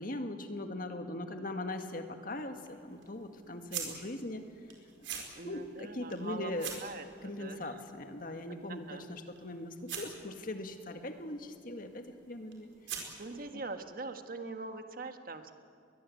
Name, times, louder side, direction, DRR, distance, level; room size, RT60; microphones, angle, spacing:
voice 1, 0.0-4.4 5.1-6.7 7.2-12.7 13.5-13.6, left 1 dB, 50° left, 6 dB, 1.8 m, -40 dB
sound 1, 2.0-13.5, right 7 dB, 85° right, 4.6 m, -47 dB
voice 2, 5.3-6.5 6.8-7.8 8.7-9.0 13.2-15.6, right 3 dB, 50° right, 7 dB, 1.5 m, -43 dB
22.0 x 21.5 x 8.5 m, 2.3 s
head